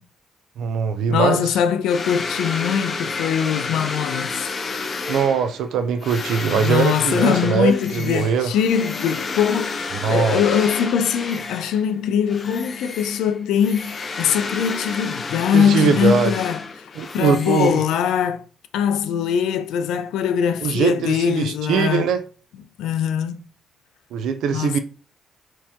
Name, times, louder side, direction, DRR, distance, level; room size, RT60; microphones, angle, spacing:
voice 1, 0.6-1.4 5.1-8.5 10.0-10.4 15.5-16.3 17.0-17.8 20.6-22.2 24.1-24.8, right 6 dB, 80° right, 0.5 m, -21 dB
voice 2, 1.1-4.5 6.5-16.9 17.1-18.4 18.7-22.1 22.8-23.4 24.5-24.8, left 8 dB, 85° left, 0.5 m, -22 dB
sound 1, 1.9-11.9 12.3-18.3, left 4 dB, 45° left, 0.7 m, -31 dB
4.5 x 2.9 x 3.6 m
cardioid pair, 90°, 0 cm